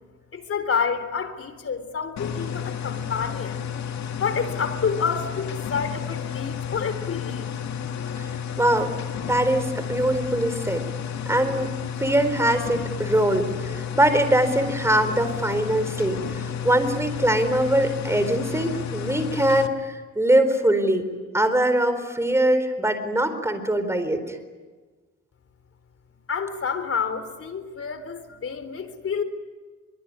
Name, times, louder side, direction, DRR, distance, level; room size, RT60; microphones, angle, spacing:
voice 1, 0.3-3.6 4.2-7.5 26.3-29.2, left 6 dB, 50° left, 10 dB, 3.8 m, -28 dB
sound 1, 2.2-19.7, left 8 dB, 65° left, 2.4 m, -32 dB
voice 2, 8.6-9.0 9.3-10.8 11.3-11.7 12.0-21.0 21.3-24.4, right 1 dB, 10° right, 9 dB, 4.3 m, -22 dB
24.0 x 24.0 x 9.8 m, 1.4 s
cardioid pair, 90°, 30 cm